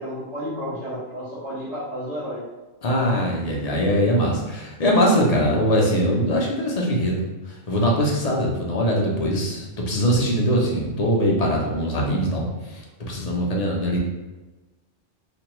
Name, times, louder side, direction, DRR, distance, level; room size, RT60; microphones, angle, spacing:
voice 1, 0.0-2.4, equal, 80° right, -13 dB, 1.6 m, -31 dB
voice 2, 2.8-7.2 7.5-14.0, equal, 45° left, -2 dB, 0.6 m, -22 dB
3.3 x 2.2 x 3.0 m, 1.2 s
omnidirectional pair, 1.1 m